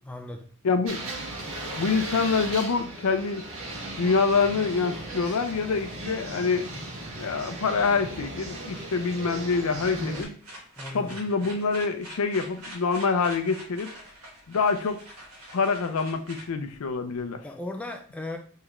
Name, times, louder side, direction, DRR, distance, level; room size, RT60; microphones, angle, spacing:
voice 1, 0.0-0.5 10.8-11.2 17.4-18.4, left 2 dB, 5° left, 0.3 m, -36 dB
voice 2, 0.6-1.0 1.8-3.4 4.0-6.7 7.2-10.3 10.9-13.9 14.5-15.0 15.5-17.4, left 4 dB, 80° left, 0.5 m, -26 dB
sound 1, 0.9-10.2, right 2 dB, 65° right, 1.2 m, -37 dB
sound 2, 9.4-17.2, right 1 dB, 85° right, 1.6 m, -45 dB
3.6 x 3.2 x 3.0 m
head